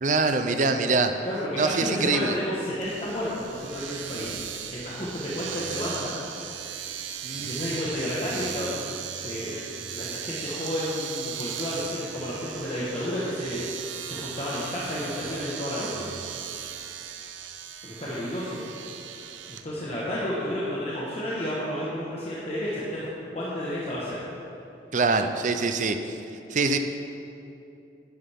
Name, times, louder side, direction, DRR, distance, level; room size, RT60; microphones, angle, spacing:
voice 1, 0.0-1.1 1.6-2.4 7.2-7.7 24.9-26.0 26.5-26.8, right 3 dB, 40° right, 7 dB, 0.6 m, -24 dB
voice 2, 1.2-4.4 4.7-6.1 7.3-16.1 17.8-18.6 19.5-24.1, equal, 35° left, -8 dB, 1.4 m, -31 dB
Domestic sounds home sounds, 2.8-19.6, right 9 dB, 85° right, 0.6 m, -37 dB
11.0 x 11.0 x 3.6 m, 2.8 s
head